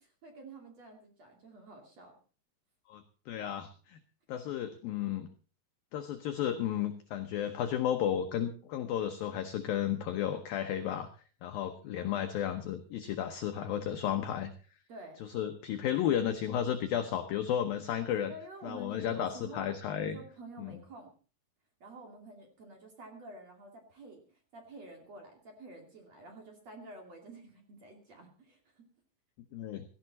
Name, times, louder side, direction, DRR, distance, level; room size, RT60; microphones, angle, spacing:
voice 1, 0.0-2.1 14.9-15.2 18.3-19.7 20.0-21.1 21.8-24.2 24.5-28.8, right 1 dB, 40° right, 3 dB, 3.1 m, -49 dB
voice 2, 2.9-4.0 4.3-5.3 5.9-11.1 11.4-14.5 15.3-18.3 18.6-20.2 20.6-20.7 29.5-29.8, left 10 dB, 75° left, 7 dB, 2.2 m, -33 dB
16.5 x 14.5 x 4.1 m, 0.38 s
omnidirectional pair, 5.4 m